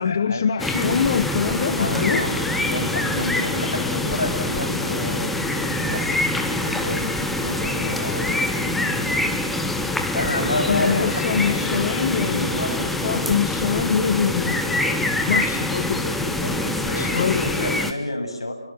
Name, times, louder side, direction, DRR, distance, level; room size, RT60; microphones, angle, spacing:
voice 1, 0.0-2.2 10.7-12.5 13.0-16.4 16.9-17.6, left 6 dB, 40° left, 12 dB, 1.3 m, -24 dB
sound 1, 0.6-17.9, left 1 dB, ahead, 1.2 m, -25 dB
voice 2, 1.7-9.5 10.1-11.8 12.2-13.5 16.4-18.5, left 2 dB, 75° left, 7 dB, 7.9 m, -30 dB
sound 2, 6.6-8.6 8.9-9.0 9.2-9.6 9.9-10.6 11.3-11.5 11.9-12.7 13.2-13.3 13.9-14.1 14.5-14.6, right 3 dB, 50° right, 6.6 m, -42 dB
29.5 x 24.5 x 7.7 m, 0.75 s
figure-of-eight pair, 155°, 3 cm